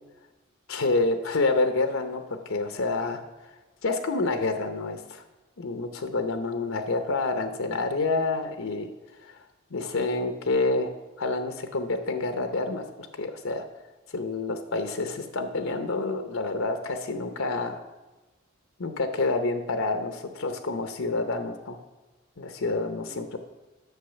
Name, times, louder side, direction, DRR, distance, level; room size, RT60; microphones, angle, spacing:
voice 1, 0.7-3.2 3.8-5.2 5.6-8.9 9.2-9.4 9.7-10.9 11.2-13.7 14.1-17.8 18.8-21.8 22.4-23.4, left 3 dB, 85° left, 7 dB, 0.8 m, -28 dB
8.3 x 6.3 x 6.8 m, 1.1 s
head